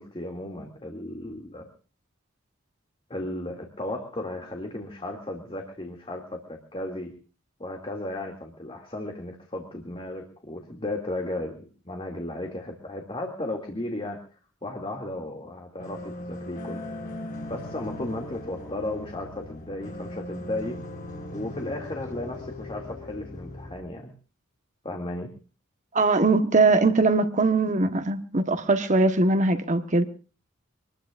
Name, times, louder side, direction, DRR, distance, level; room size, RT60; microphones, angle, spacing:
voice 1, 0.0-1.7 3.1-7.1 7.6-14.2 14.6-16.8 17.5-20.8 21.3-24.1 24.8-25.3, left 1 dB, 25° left, 2 dB, 2.6 m, -35 dB
sound 1, 15.8-23.8, left 1 dB, 45° left, 6.4 m, -39 dB
voice 2, 25.9-30.0, right 3 dB, 35° right, 8 dB, 1.3 m, -21 dB
25.5 x 20.5 x 2.6 m, 0.37 s
head